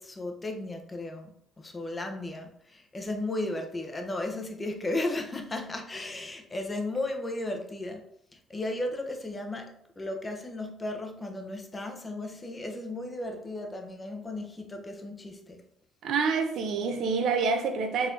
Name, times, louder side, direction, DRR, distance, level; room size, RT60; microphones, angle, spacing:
voice 1, 0.0-8.0 8.3-15.6, left 2 dB, 25° left, 0.7 m, -35 dB
voice 2, 16.0-18.1, right 5 dB, 70° right, 0.5 m, -27 dB
4.0 x 2.7 x 2.5 m
supercardioid pair, 80°, 0 cm